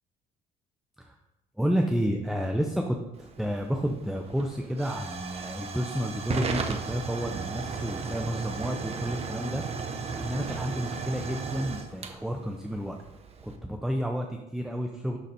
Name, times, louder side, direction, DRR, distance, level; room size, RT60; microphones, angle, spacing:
voice 1, 1.6-9.6 10.1-13.0 13.4-15.2, equal, ahead, 3 dB, 0.7 m, -31 dB
Hiss / Fire / Tick, 3.2-13.6, right 5 dB, 35° right, 0.9 m, -36 dB
11.5 x 4.0 x 4.3 m, 0.93 s
cardioid pair, 110°, 17 cm